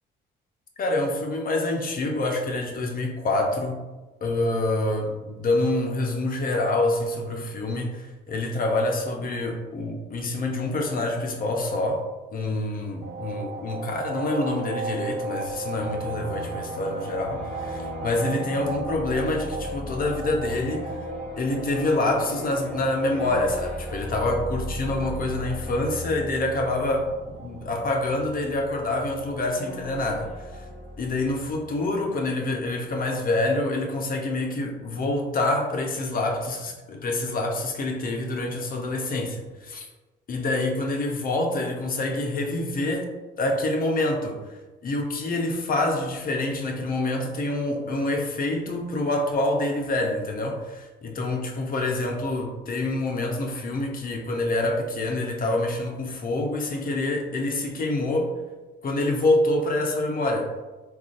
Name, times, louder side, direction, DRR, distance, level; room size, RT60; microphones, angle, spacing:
voice 1, 0.8-3.8 4.2-12.0 12.3-21.0 21.4-30.6 31.0-39.9 40.3-58.3 58.8-60.6, left 2 dB, 45° left, 2 dB, 0.6 m, -26 dB
sound 1, 13.0-31.6, right 2 dB, 75° right, 0.8 m, -37 dB
sound 2, 15.6-32.1, left 1 dB, 10° left, 1.3 m, -38 dB
3.7 x 2.4 x 2.5 m, 1.2 s
cardioid pair, 90°, 20 cm